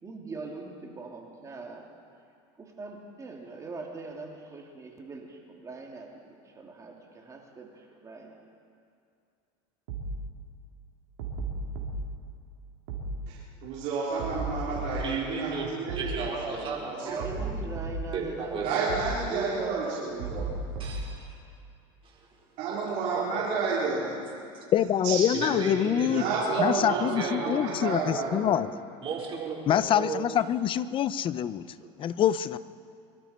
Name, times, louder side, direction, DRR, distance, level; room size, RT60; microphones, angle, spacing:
voice 1, 0.0-1.9 2.6-8.4 17.0-20.5, right 3 dB, 25° right, 0 dB, 2.8 m, -41 dB
sound 1, 9.9-10.2 11.2-12.0 12.9-13.2 14.2-15.1 15.9-16.2 17.2-18.1 18.9-19.2 20.2-21.1, right 3 dB, 80° right, 2.8 m, -34 dB
voice 2, 13.3-17.2 18.6-20.4 22.6-24.2 25.0-25.2 26.0-28.5, right 4 dB, 65° right, -6 dB, 3.8 m, -31 dB
voice 3, 14.9-17.5 18.1-18.7 20.8-21.4 22.0-22.3 22.6-23.5 25.3-27.6 29.0-30.3 31.8-31.9, right 5 dB, 40° right, -3 dB, 4.3 m, -35 dB
voice 4, 24.7-26.2 26.6-28.7 29.7-31.6 32.0-32.6, left 10 dB, 40° left, 15 dB, 0.6 m, -25 dB
24.0 x 13.0 x 4.4 m, 2.5 s
supercardioid pair, 105°, 14 cm